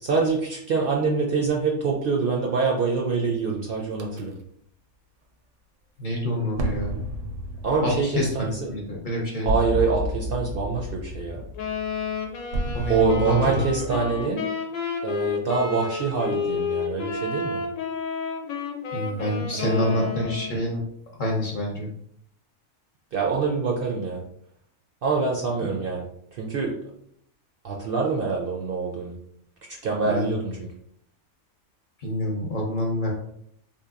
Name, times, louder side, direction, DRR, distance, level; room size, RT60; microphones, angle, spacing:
voice 1, 0.0-4.3 7.6-8.7 9.4-11.4 12.9-14.4 15.0-17.6 19.6-20.1 23.1-24.2 25.0-26.1 26.3-26.7 27.6-29.2 29.7-30.7, right 4 dB, 60° right, -1 dB, 0.6 m, -25 dB
sound 1, 4.0-4.2 6.6-14.3, equal, 85° right, 0.9 m, -32 dB
voice 2, 6.0-7.0 7.8-9.5 12.7-13.5 18.9-20.8 21.2-21.9 30.0-30.3 32.0-33.1, left 1 dB, 45° left, -2 dB, 0.8 m, -27 dB
Wind instrument woodwind instrument, 11.6-20.6, left 5 dB, 90° left, 1.0 m, -31 dB
3.6 x 2.8 x 2.4 m, 0.70 s
omnidirectional pair, 1.3 m